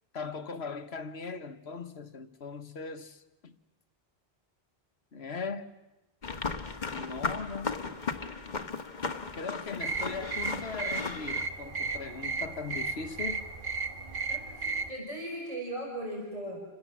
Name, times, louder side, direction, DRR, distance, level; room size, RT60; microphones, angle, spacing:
voice 1, 0.1-3.6 5.1-5.7 6.9-7.8 9.3-13.4, left 4 dB, 75° left, 1.6 m, -39 dB
sound 1, 6.2-11.5, left 4 dB, 45° left, 1.6 m, -36 dB
sound 2, 9.8-14.9, right 4 dB, 55° right, 1.6 m, -34 dB
voice 2, 14.3-16.6, right 1 dB, 35° right, 5.6 m, -38 dB
29.0 x 25.5 x 7.5 m
omnidirectional pair, 1.1 m